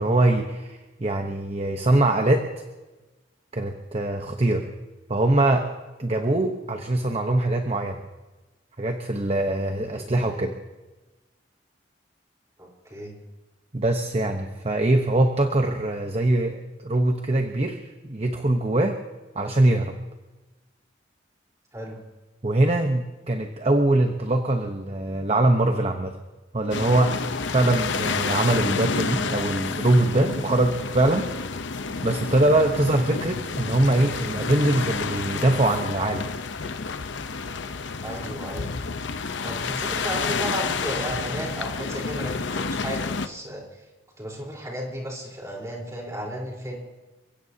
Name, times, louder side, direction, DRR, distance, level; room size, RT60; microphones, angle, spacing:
voice 1, 0.0-2.4 3.5-4.7 5.1-5.7 6.0-8.0 8.8-10.5 13.7-19.0 19.3-19.9 22.4-26.2 26.5-27.1 27.5-31.3 32.0-36.2, right 2 dB, 35° right, 4 dB, 1.0 m, -22 dB
voice 2, 12.6-13.1 21.7-22.0 38.0-38.7 39.4-43.6 44.2-46.8, right 1 dB, 15° right, -2 dB, 4.0 m, -34 dB
sound 1, 26.7-43.3, left 4 dB, 75° left, 0.8 m, -30 dB
29.5 x 16.5 x 2.8 m, 1.1 s
head